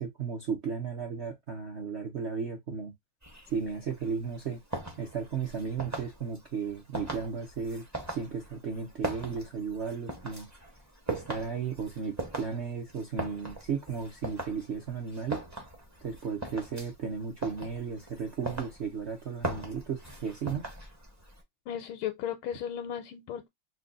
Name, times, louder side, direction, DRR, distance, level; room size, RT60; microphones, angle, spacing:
voice 1, 0.0-2.9 3.5-4.6 5.0-10.5 11.1-15.4 16.0-20.6, right 6 dB, 75° right, 0.6 m, -35 dB
sound 1, 3.2-21.4, right 2 dB, 25° right, 0.3 m, -41 dB
voice 2, 21.7-23.5, left 9 dB, 85° left, 1.4 m, -35 dB
3.9 x 2.3 x 3.8 m
omnidirectional pair, 2.2 m